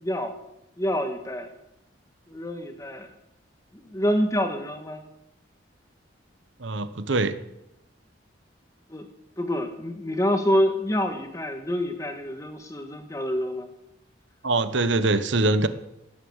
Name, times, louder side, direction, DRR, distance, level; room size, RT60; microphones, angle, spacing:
voice 1, 0.0-0.3 0.8-1.5 2.3-3.1 3.7-5.0 8.9-9.1 9.4-13.7, equal, 15° left, 6 dB, 1.6 m, -27 dB
voice 2, 6.6-7.4 14.4-15.7, right 2 dB, 70° right, 12 dB, 1.0 m, -23 dB
18.5 x 8.1 x 8.1 m, 0.87 s
head